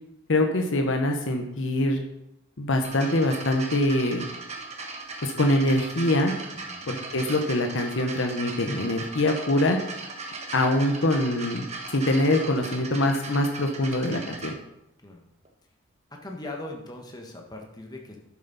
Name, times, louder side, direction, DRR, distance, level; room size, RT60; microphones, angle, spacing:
voice 1, 0.3-2.0 2.6-4.3 5.2-6.3 6.9-9.8 10.5-14.5, left 1 dB, 60° left, 4 dB, 0.9 m, -24 dB
sound 1, 2.8-14.5 15.4-15.5, right 3 dB, 30° right, 1.2 m, -38 dB
voice 2, 6.5-6.9 15.0-15.2 16.1-18.2, left 2 dB, 20° left, 1 dB, 1.2 m, -40 dB
11.0 x 7.2 x 4.1 m, 0.84 s
head